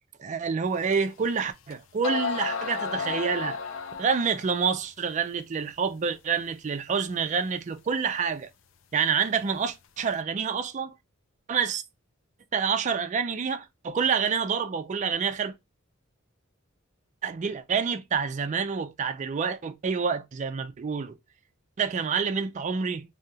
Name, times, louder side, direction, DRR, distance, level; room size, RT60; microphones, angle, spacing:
voice 1, 0.2-3.6 4.0-8.5 8.9-10.9 11.5-11.8 12.5-15.5 17.2-21.2 21.8-23.0, right 6 dB, 35° right, 0.4 m, -28 dB
sound 1, 0.9-1.0 1.7-1.8 2.0-4.5, left 5 dB, 65° left, 0.4 m, -32 dB
2.8 x 2.3 x 2.6 m
head